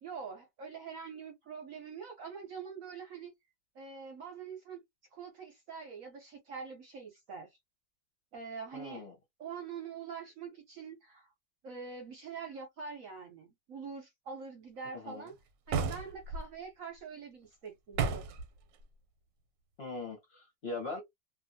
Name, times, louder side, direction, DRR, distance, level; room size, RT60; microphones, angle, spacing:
voice 1, 0.0-3.3 3.7-4.8 5.1-7.6 8.3-9.0 9.4-11.3 11.6-15.3 15.7-18.3, right 5 dB, 60° right, 0.9 m, -44 dB
voice 2, 8.7-9.1 14.9-15.3 19.8-21.0, left 3 dB, 45° left, 0.8 m, -41 dB
sound 1, 15.7-16.4 17.9-18.5, right 5 dB, 85° right, 1.3 m, -32 dB
2.6 x 2.6 x 2.6 m
omnidirectional pair, 2.0 m